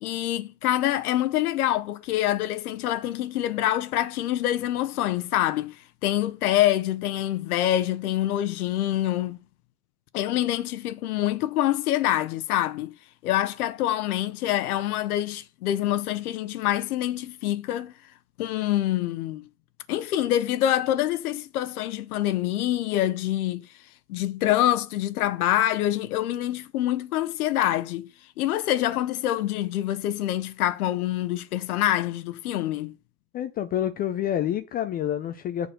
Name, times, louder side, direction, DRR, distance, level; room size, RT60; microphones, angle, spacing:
voice 1, 0.0-9.4 10.1-12.9 13.2-17.9 18.4-19.5 19.9-23.7 24.1-28.1 28.4-32.9, left 13 dB, 60° left, 0.9 m, -26 dB
voice 2, 33.3-35.7, left 11 dB, 20° left, 0.4 m, -28 dB
7.9 x 4.1 x 6.5 m
figure-of-eight pair, 85°, 49 cm